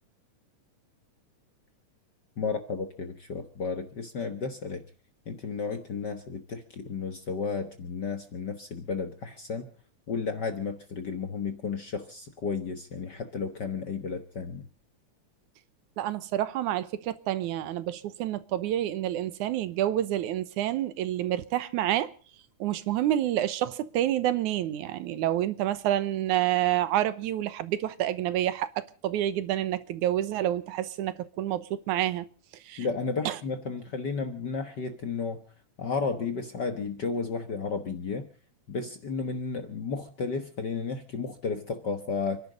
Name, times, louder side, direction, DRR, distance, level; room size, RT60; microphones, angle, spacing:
voice 1, 2.4-4.8 5.3-9.7 10.1-14.7 32.8-35.4 35.8-38.3 38.7-42.4, left 5 dB, 50° left, 1.3 m, -33 dB
voice 2, 16.0-22.1 22.6-32.3 32.7-32.9 33.3-33.4, right 12 dB, 85° right, 2.4 m, -28 dB
29.5 x 11.5 x 4.0 m
omnidirectional pair, 3.4 m